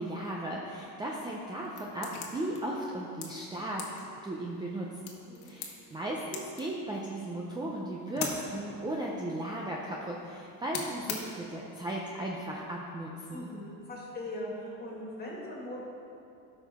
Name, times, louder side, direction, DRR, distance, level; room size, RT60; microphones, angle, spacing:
voice 1, 0.0-5.0 5.4-13.5, right 1 dB, 10° right, -3 dB, 0.6 m, -36 dB
sound 1, 1.1-11.7, left 5 dB, 75° left, 1.4 m, -44 dB
voice 2, 13.3-15.8, left 1 dB, 25° left, -3 dB, 2.1 m, -40 dB
12.5 x 5.9 x 3.6 m, 2.7 s
cardioid pair, 130°, 38 cm